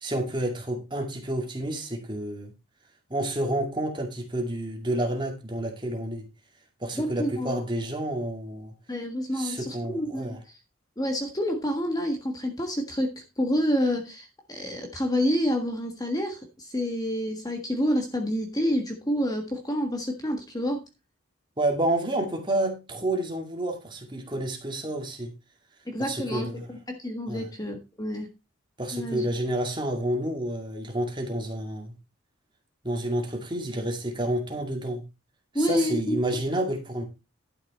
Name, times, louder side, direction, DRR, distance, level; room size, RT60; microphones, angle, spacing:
voice 1, 0.0-2.5 3.1-6.3 6.8-8.7 9.3-10.4 21.6-25.3 26.0-26.7 27.3-27.5 28.8-31.9 32.8-35.0 35.6-37.0, right 1 dB, 20° right, 3 dB, 2.3 m, -29 dB
voice 2, 6.9-7.6 8.9-10.6 11.0-20.8 25.9-28.3 28.9-29.3 35.5-36.1, equal, 20° left, 4 dB, 1.5 m, -28 dB
11.5 x 6.7 x 4.2 m, 0.27 s
head